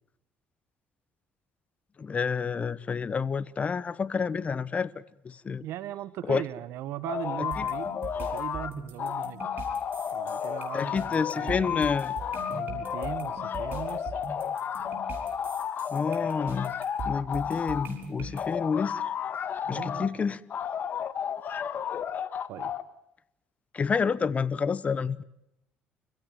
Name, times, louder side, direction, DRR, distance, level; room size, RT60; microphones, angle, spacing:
voice 1, 2.0-5.6 6.3-6.4 7.6-7.7 10.7-12.1 15.9-16.7 17.0-19.0 19.7-20.4 23.7-25.2, left 5 dB, 30° left, 1.1 m, -29 dB
voice 2, 5.6-7.9 8.3-9.4 10.1-11.8 12.5-14.2 19.6-20.1 22.5-22.7, right 12 dB, 75° right, 1.3 m, -38 dB
sound 1, 7.0-8.7 9.0-17.9 18.3-20.1 20.5-22.8, left 8 dB, 50° left, 1.5 m, -32 dB
sound 2, 7.5-18.4, right 4 dB, 50° right, 6.4 m, -41 dB
29.5 x 16.0 x 9.3 m
cardioid pair, 95°, 4 cm